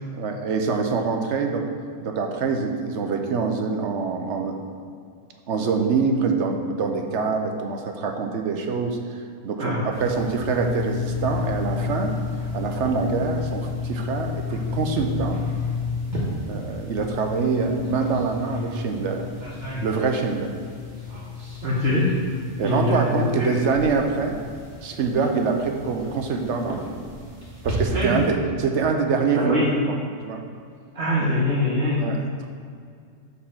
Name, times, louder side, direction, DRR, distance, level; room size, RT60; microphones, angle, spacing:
voice 1, 0.1-1.7 2.0-4.6 5.5-9.0 9.4-12.1 12.5-15.4 16.5-19.3 19.8-20.6 22.6-24.4 24.8-27.1 27.6-29.5 29.9-30.0 30.2-30.4 31.2-31.3 32.0-32.5, right 5 dB, 70° right, 4 dB, 1.0 m, -25 dB
voice 2, 9.6-10.0 21.6-22.1 22.6-23.6 27.9-28.2 29.3-29.7 30.9-32.0, left 1 dB, 55° right, -7 dB, 1.4 m, -23 dB
sound 1, 9.9-28.3, left 4 dB, 35° right, 1.5 m, -32 dB
6.6 x 4.1 x 5.6 m, 2.3 s
omnidirectional pair, 1.3 m